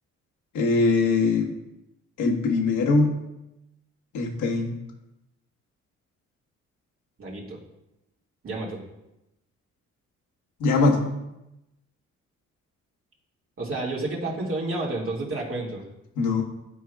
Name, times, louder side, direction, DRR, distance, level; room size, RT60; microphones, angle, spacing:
voice 1, 0.5-1.5 2.2-3.2 4.1-4.8 10.6-11.2 16.2-16.4, left 3 dB, 80° left, 0 dB, 1.3 m, -22 dB
voice 2, 7.2-7.6 8.4-8.8 13.6-15.8, right 2 dB, 45° right, -3 dB, 2.1 m, -30 dB
12.0 x 4.6 x 2.3 m, 0.91 s
cardioid pair, 90°, 30 cm